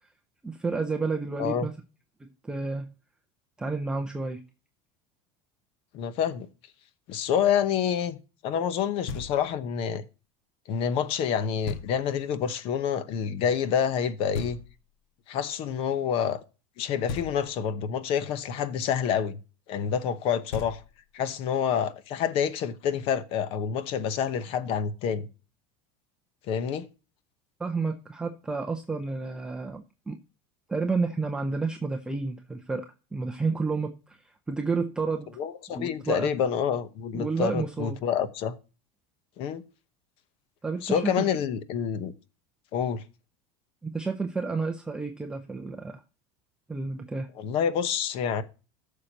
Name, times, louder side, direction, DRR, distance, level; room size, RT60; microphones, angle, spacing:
voice 1, 0.4-1.7 2.2-2.9 3.6-4.4 27.6-30.2 30.7-32.9 33.1-35.3 35.8-36.3 37.1-38.0 40.6-41.2 43.8-46.0 46.7-47.3, right 4 dB, 5° right, 0.6 m, -30 dB
voice 2, 5.9-6.5 7.1-8.2 8.4-10.0 10.7-14.6 15.3-16.4 16.8-19.4 19.7-20.8 21.1-25.3 26.5-26.8 35.4-38.6 39.4-39.6 40.8-42.1 42.7-43.0 47.4-48.4, left 8 dB, 40° left, 0.9 m, -27 dB
Knock, 9.1-9.7 11.7-12.3 14.3-15.1 17.1-17.8 20.1-20.2 20.5-21.3, left 5 dB, 70° left, 1.9 m, -39 dB
14.0 x 6.6 x 2.9 m
cardioid pair, 170°, 14 cm